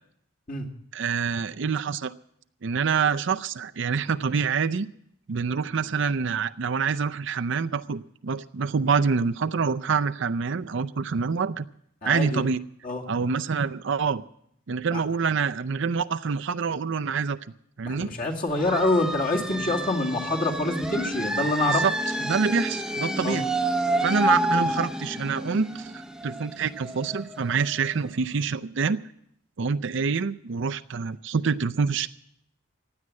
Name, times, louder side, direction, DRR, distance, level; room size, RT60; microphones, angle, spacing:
voice 1, 0.9-2.1 2.6-4.9 5.3-11.7 12.0-12.6 13.1-14.2 14.7-17.4 17.8-18.1 21.7-21.9 22.2-23.5 24.0-29.0 29.6-32.1, right 5 dB, 65° right, 10 dB, 0.5 m, -26 dB
voice 2, 12.0-12.5 12.8-13.0 14.9-15.0 17.8-21.8 23.2-23.4, left 2 dB, 45° left, -1 dB, 2.3 m, -26 dB
sound 1, 18.5-28.0, right 1 dB, 5° right, 0.7 m, -29 dB
16.0 x 9.7 x 7.6 m, 0.71 s
head